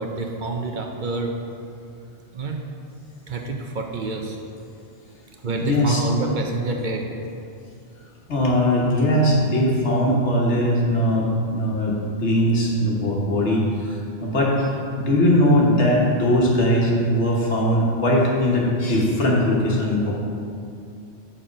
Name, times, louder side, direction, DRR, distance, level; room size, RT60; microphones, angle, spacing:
voice 1, 0.0-1.3 2.3-2.6 3.3-4.4 5.4-7.1, right 3 dB, 50° right, 2 dB, 0.7 m, -27 dB
voice 2, 5.4-6.0 8.3-14.7 15.0-20.1, equal, 90° left, -3 dB, 1.5 m, -20 dB
7.4 x 4.3 x 5.0 m, 2.5 s
omnidirectional pair, 1.1 m